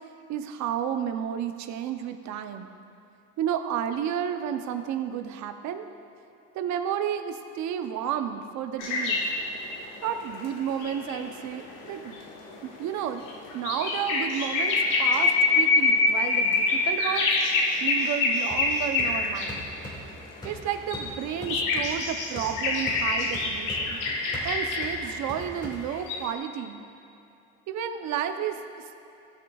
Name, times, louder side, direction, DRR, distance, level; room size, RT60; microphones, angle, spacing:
voice 1, 0.3-2.7 3.4-5.9 6.5-9.2 10.0-12.2 12.6-13.2 13.5-17.3 17.8-19.7 20.4-24.0 24.4-26.8 27.7-29.0, right 9 dB, 60° right, 7 dB, 0.7 m, -31 dB
sound 1, 8.8-19.6 20.2-25.0 25.9-26.3, left 3 dB, 75° left, 1.3 m, -26 dB
sound 2, 18.5-26.2, equal, 15° left, 2.0 m, -42 dB
17.0 x 6.1 x 2.4 m, 2.6 s
cardioid pair, 125°, 32 cm